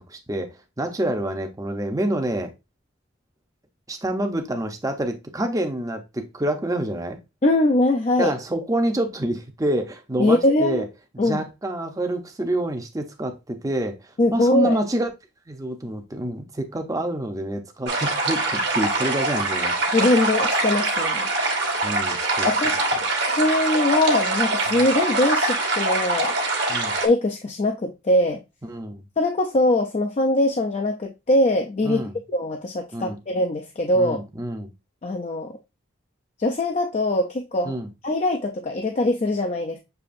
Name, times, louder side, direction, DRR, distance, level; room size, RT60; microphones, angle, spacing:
voice 1, 0.0-2.5 3.9-7.2 8.2-10.9 11.1-15.1 15.5-19.9 21.8-22.5 24.7-24.8 26.7-27.0 28.6-29.0 31.8-32.1 32.9-33.2 33.9-34.7 37.6-37.9, right 1 dB, 15° right, 0.6 m, -27 dB
voice 2, 7.4-8.3 10.2-10.8 11.2-11.4 14.2-14.8 19.9-21.3 22.5-22.7 23.3-26.3 27.0-28.4 29.2-32.0 32.3-34.2 35.0-35.6 36.4-37.8 38.0-39.8, left 1 dB, 35° left, 0.4 m, -22 dB
sound 1, 17.9-27.1, right 2 dB, 60° right, 1.2 m, -23 dB
6.9 x 2.9 x 2.5 m
head